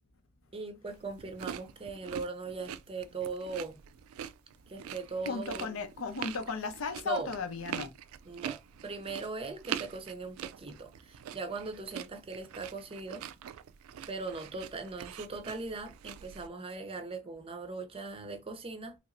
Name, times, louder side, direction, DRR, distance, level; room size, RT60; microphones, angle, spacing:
voice 1, 0.5-3.8 4.7-5.7 7.0-7.3 8.3-13.2 14.1-18.9, right 3 dB, 25° right, 0.5 m, -39 dB
sound 1, 0.9-16.5, right 9 dB, 80° right, 0.3 m, -44 dB
voice 2, 5.3-7.9, left 4 dB, 75° left, 0.7 m, -35 dB
3.2 x 2.9 x 2.5 m
head